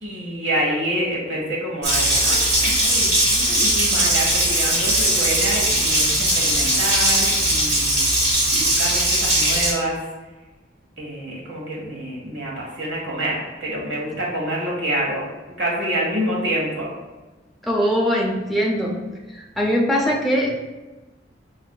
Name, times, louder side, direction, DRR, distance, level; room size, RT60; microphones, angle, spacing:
voice 1, 0.0-8.0 8.5-10.0 11.0-15.2 15.6-16.9, right 1 dB, 85° right, -3 dB, 1.1 m, -27 dB
Water tap faucet, 1.8-9.7, right 1 dB, 65° right, 1.4 m, -19 dB
voice 2, 17.6-18.9 19.6-20.5, equal, ahead, -2 dB, 0.6 m, -21 dB
5.6 x 2.5 x 2.2 m, 1.2 s
head